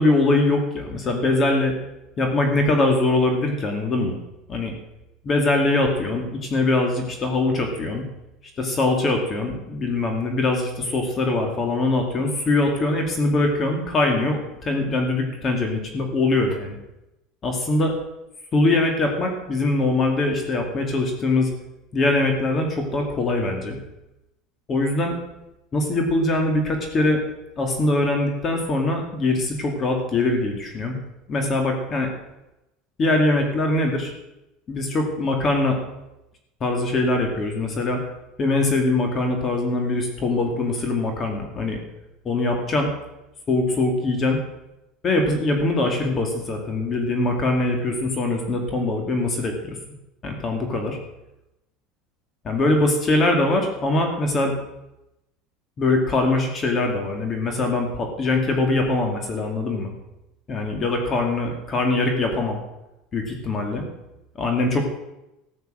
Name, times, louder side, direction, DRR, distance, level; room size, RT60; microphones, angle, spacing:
voice 1, 0.0-1.8 2.2-4.2 4.5-4.7 5.2-8.0 8.6-16.8 17.4-17.9 18.5-21.5 21.9-23.8 24.7-25.2 25.7-27.2 27.6-31.0 31.3-32.1 33.0-34.1 34.7-35.8 36.6-38.0 38.4-41.8 42.2-42.9 43.5-44.4 45.0-49.8 50.2-51.0 52.4-54.5 55.8-59.9 60.5-62.6 63.1-63.9 64.4-64.8, left 2 dB, 30° left, 3 dB, 2.4 m, -22 dB
14.5 x 7.9 x 7.7 m, 0.93 s
cardioid pair, 145°, 0 cm